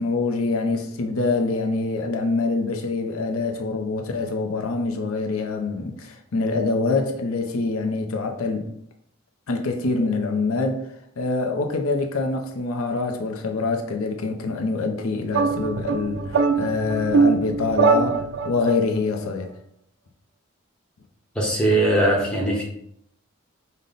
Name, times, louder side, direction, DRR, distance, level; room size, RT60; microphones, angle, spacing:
voice 1, 0.0-8.7 9.5-10.8 11.2-19.5, left 3 dB, 85° left, 0.6 m, -25 dB
sound 1, 15.3-18.8, right 5 dB, 55° right, 0.3 m, -22 dB
voice 2, 21.3-22.6, right 1 dB, 5° left, 0.9 m, -20 dB
5.3 x 2.1 x 3.9 m
head